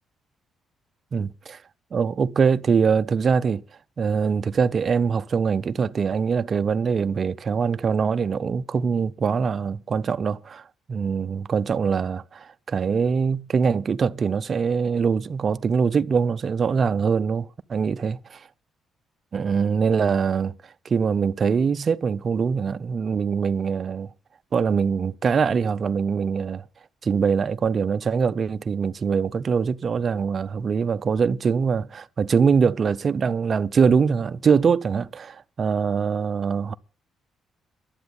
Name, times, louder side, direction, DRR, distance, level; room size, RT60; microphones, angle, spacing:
voice 1, 1.1-1.6 1.9-3.6 4.0-18.5 19.3-24.1 24.5-26.6 27.0-36.7, right 6 dB, 45° right, 0.5 m, -23 dB
12.0 x 7.8 x 9.7 m
cardioid pair, 90°, 0 cm